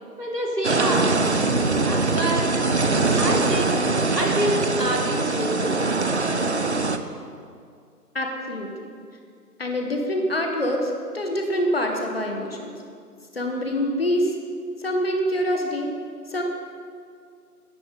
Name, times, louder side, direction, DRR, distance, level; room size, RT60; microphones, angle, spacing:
voice 1, 0.2-1.2 1.8-2.5 3.2-3.8 4.2-6.0, right 1 dB, 80° right, -2 dB, 3.6 m, -27 dB
sound 1, 0.6-7.0, right 3 dB, 45° right, 0.7 m, -22 dB
voice 2, 8.1-8.9 9.6-12.7 13.3-14.3 14.8-15.9 16.3-16.4, equal, 40° left, 2 dB, 1.4 m, -25 dB
14.0 x 10.5 x 5.4 m, 2.2 s
figure-of-eight pair, 160°, 48 cm